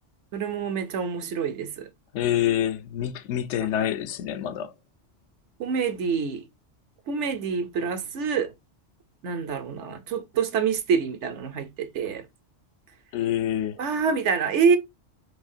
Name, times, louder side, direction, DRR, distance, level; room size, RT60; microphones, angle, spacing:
voice 1, 0.3-1.9 5.6-6.5 7.1-8.5 9.2-12.2 13.8-14.8, right 6 dB, 70° right, 1.0 m, -26 dB
voice 2, 2.1-4.7 13.1-13.8, left 11 dB, 75° left, 0.8 m, -26 dB
4.8 x 3.1 x 2.6 m
omnidirectional pair, 1.3 m